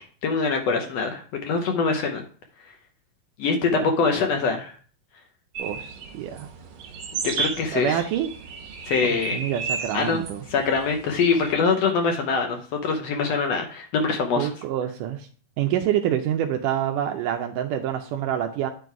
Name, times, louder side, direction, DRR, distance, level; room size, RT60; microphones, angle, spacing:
voice 1, 0.0-2.2 3.4-4.7 7.4-8.0 8.9-9.4 9.9-10.2 10.5-14.5, left 4 dB, 75° left, 4 dB, 1.5 m, -24 dB
sound 1, 5.5-11.5, right 6 dB, 65° right, 2.1 m, -34 dB
voice 2, 5.6-6.5 7.7-8.3 9.0-10.4 14.4-15.3 15.6-18.7, right 10 dB, 80° right, 5 dB, 2.0 m, -27 dB
9.9 x 3.9 x 4.6 m, 0.42 s
omnidirectional pair, 4.1 m